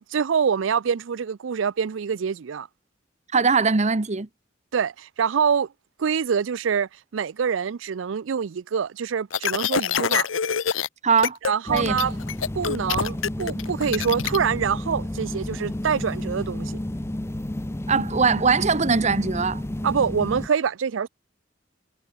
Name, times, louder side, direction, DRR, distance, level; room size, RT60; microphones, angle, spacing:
voice 1, 0.0-2.7 4.7-5.7 6.0-10.3 11.4-12.2 12.6-16.8 19.8-21.1, right 6 dB, 70° right, 0.4 m, -25 dB
voice 2, 3.3-4.3 11.0-11.4 11.7-12.0 17.9-19.6, right 5 dB, 35° right, 0.9 m, -21 dB
sound 1, 9.3-10.9 11.2-11.5 11.8-14.4, left 7 dB, 85° left, 0.8 m, -25 dB
sound 2, 11.7-20.5, left 1 dB, 15° left, 0.7 m, -31 dB
head